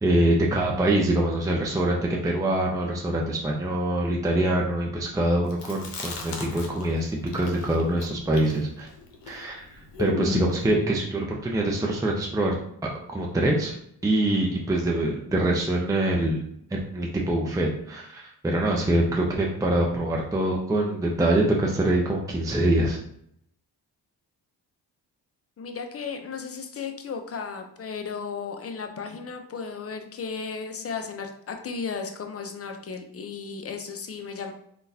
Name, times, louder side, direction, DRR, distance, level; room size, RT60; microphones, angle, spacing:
voice 1, 0.0-8.9 9.3-9.6 10.0-12.6 13.1-13.8 14.0-16.4 16.7-23.0, right 1 dB, 10° right, -1 dB, 0.5 m, -24 dB
Chewing mastication, 5.5-7.0 7.3-10.6, left 3 dB, 75° left, 0.8 m, -34 dB
voice 2, 25.6-34.5, left 5 dB, 35° left, 5 dB, 0.6 m, -35 dB
3.7 x 2.4 x 2.7 m, 0.71 s
supercardioid pair, 55°, 42 cm